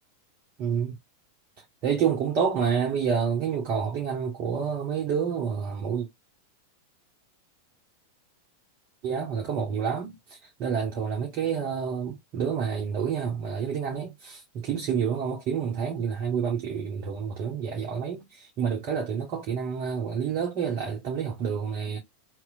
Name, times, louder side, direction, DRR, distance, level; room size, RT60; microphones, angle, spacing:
voice 1, 0.6-1.0 1.6-6.1 9.0-22.0, right 7 dB, 40° right, 0.9 m, -28 dB
2.9 x 2.1 x 4.0 m
figure-of-eight pair, 90°, 0 cm